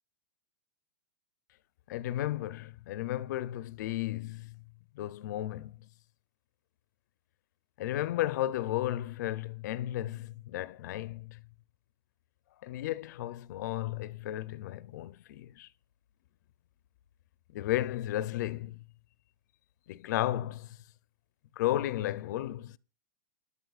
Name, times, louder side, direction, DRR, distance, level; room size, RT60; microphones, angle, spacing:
voice 1, 1.9-4.6 4.9-5.8 7.8-11.4 12.6-15.7 17.5-18.8 19.9-20.8 21.6-22.8, left 14 dB, 55° left, 0.6 m, -34 dB
26.5 x 11.0 x 2.4 m
supercardioid pair, 150°, 11 cm